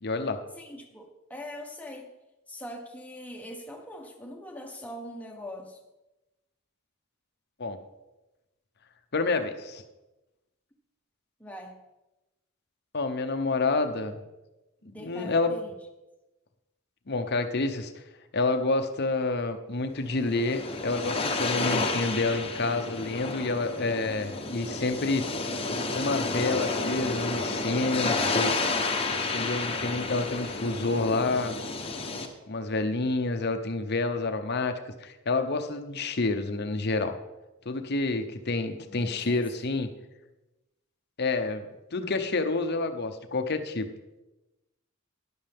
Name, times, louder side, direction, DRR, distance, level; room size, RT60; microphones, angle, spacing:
voice 1, 0.0-0.4 7.6-7.8 9.1-9.8 12.9-14.2 14.8-15.5 17.1-17.9 18.3-25.3 25.9-28.5 29.3-31.6 32.5-34.7 35.0-37.2 37.7-39.9 41.2-41.6 41.9-43.9, left 3 dB, 50° left, 8 dB, 0.8 m, -28 dB
voice 2, 0.6-2.1 2.5-5.8 11.4-11.8 14.8-15.7 38.8-39.7, equal, 5° left, 1 dB, 1.2 m, -42 dB
sound 1, 20.0-32.3, left 3 dB, 25° left, 1.0 m, -31 dB
13.0 x 10.5 x 3.6 m, 1.0 s
head